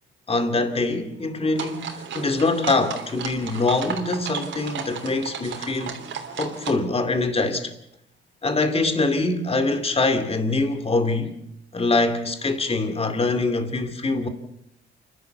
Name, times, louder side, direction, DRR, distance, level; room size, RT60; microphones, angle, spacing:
voice 1, 0.3-6.0 6.4-7.7 8.4-11.3 11.7-14.3, left 3 dB, 30° left, 2.5 m, -24 dB
sound 1, 1.6-6.7, right 7 dB, 70° right, 3.2 m, -34 dB
28.0 x 12.0 x 8.2 m
cardioid pair, 90°, 20 cm